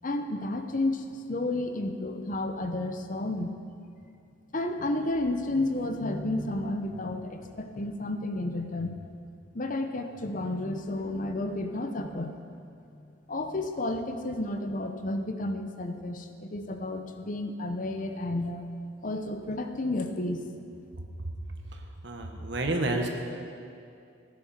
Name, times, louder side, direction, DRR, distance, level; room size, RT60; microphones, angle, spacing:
voice 1, 0.0-3.6 4.5-9.0 9.5-12.3 12.9-18.6 19.0-20.4, left 2 dB, 45° left, 6 dB, 0.8 m, -31 dB
voice 2, 22.0-23.1, right 2 dB, 65° right, 3 dB, 1.4 m, -29 dB
16.0 x 10.5 x 4.3 m, 2.5 s
head